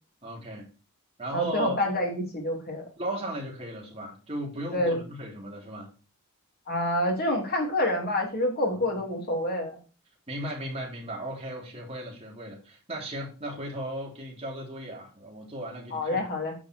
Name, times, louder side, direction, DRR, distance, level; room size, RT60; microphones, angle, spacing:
voice 1, 0.2-0.7 1.2-1.8 3.0-5.9 10.3-16.3, right 1 dB, 30° right, -2 dB, 3.9 m, -36 dB
voice 2, 1.3-2.8 4.7-5.0 6.7-9.8 15.9-16.5, left 1 dB, 45° left, 1 dB, 3.6 m, -27 dB
9.8 x 5.7 x 4.7 m, 0.34 s
head